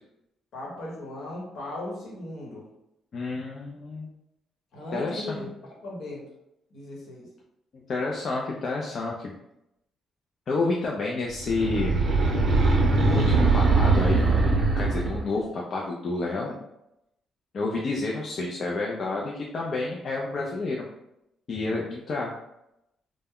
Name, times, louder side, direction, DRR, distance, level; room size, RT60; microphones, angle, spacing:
voice 1, 0.5-2.7 4.7-6.2 6.7-7.3, left 1 dB, 75° left, -3 dB, 1.0 m, -37 dB
voice 2, 3.1-4.1 4.9-5.5 7.9-9.3 10.5-12.0 13.1-16.6 17.5-20.9 21.5-22.3, left 3 dB, 50° left, -2 dB, 0.4 m, -30 dB
sound 1, 11.4-15.3, right 3 dB, 55° right, 0.6 m, -21 dB
2.2 x 2.0 x 3.5 m, 0.84 s
cardioid pair, 90°, 0 cm